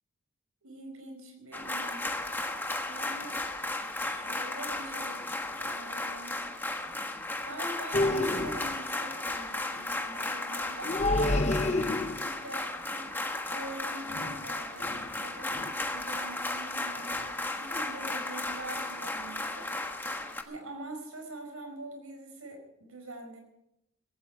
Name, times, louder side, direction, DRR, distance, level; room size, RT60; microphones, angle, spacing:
voice 1, 0.6-2.1 2.9-3.4 4.0-5.2 5.6-6.4 7.4-11.0 11.6-13.1 13.5-19.7 20.5-23.4, right 2 dB, 75° right, 5 dB, 4.8 m, -44 dB
sound 1, 1.5-20.4, left 2 dB, 10° left, 1.3 m, -35 dB
sound 2, 7.9-8.8 10.8-12.4 14.1-14.5 14.8-15.1 15.5-15.7, left 2 dB, 30° left, 0.8 m, -29 dB
16.5 x 16.0 x 4.8 m, 0.82 s
head